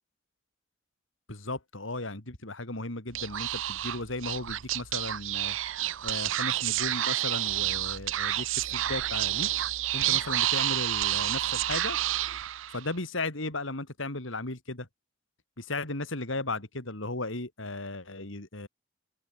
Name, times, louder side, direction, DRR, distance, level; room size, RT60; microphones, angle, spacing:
voice 1, 1.3-5.6 6.0-9.5 9.9-12.0 12.7-14.9 15.6-18.7, left 2 dB, 85° left, 3.5 m, -35 dB
Speech / Whispering, 3.1-12.9, right 13 dB, 90° right, 0.6 m, -29 dB
open air
head